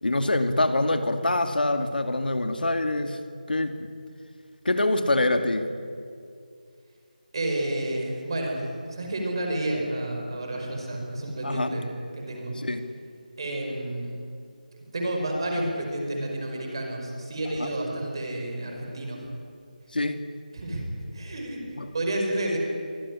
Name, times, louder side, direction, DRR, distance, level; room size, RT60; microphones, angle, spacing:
voice 1, 0.0-3.2 3.5-3.9 4.6-5.7 11.4-11.7 12.6-12.8 17.6-17.7 19.9-20.2 21.8-21.9, left 2 dB, 90° left, 7 dB, 2.5 m, -25 dB
voice 2, 7.3-11.9 12.1-12.5 13.4-14.2 14.9-19.2 20.5-20.9 21.1-21.6 21.9-22.6, right 1 dB, 30° right, 1 dB, 5.2 m, -30 dB
25.0 x 17.0 x 9.9 m, 2.3 s
figure-of-eight pair, 175°, 5 cm